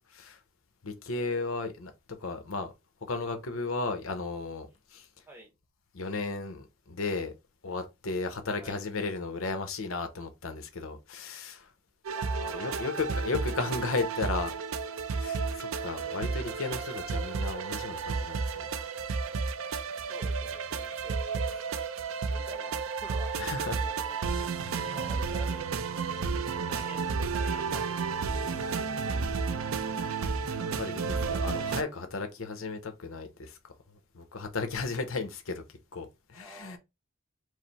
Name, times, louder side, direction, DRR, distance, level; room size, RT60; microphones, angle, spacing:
voice 1, 0.8-1.9 2.2-2.7 3.1-5.1 5.9-7.3 7.6-11.7 12.4-14.5 15.2-18.7 23.4-23.8 24.8-25.1 26.2-26.7 28.5-29.0 30.8-33.6 34.1-35.6 35.9-36.8, left 3 dB, 80° left, 0.8 m, -35 dB
sound 1, 12.0-31.8, right 5 dB, 85° right, 0.5 m, -32 dB
voice 2, 12.1-13.2 15.7-15.9 20.1-21.6 22.2-25.9 26.6-28.1 36.3-36.8, right 1 dB, 10° right, 0.9 m, -48 dB
4.8 x 2.0 x 4.1 m
head